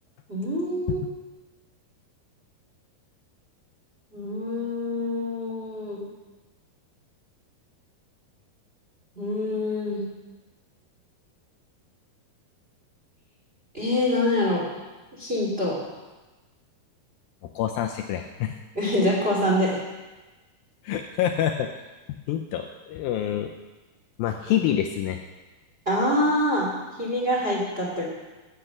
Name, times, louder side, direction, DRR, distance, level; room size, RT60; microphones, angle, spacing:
voice 1, 0.3-1.1 4.1-6.0 9.2-10.0 13.7-14.6 15.2-15.8 18.7-19.8 25.9-26.7 27.0-28.1, left 1 dB, 20° right, -3 dB, 2.1 m, -25 dB
voice 2, 17.6-18.6 20.8-21.7 22.3-23.5 24.2-25.2, left 10 dB, 80° left, 4 dB, 2.2 m, -26 dB
15.5 x 6.5 x 5.9 m, 1.2 s
omnidirectional pair, 4.6 m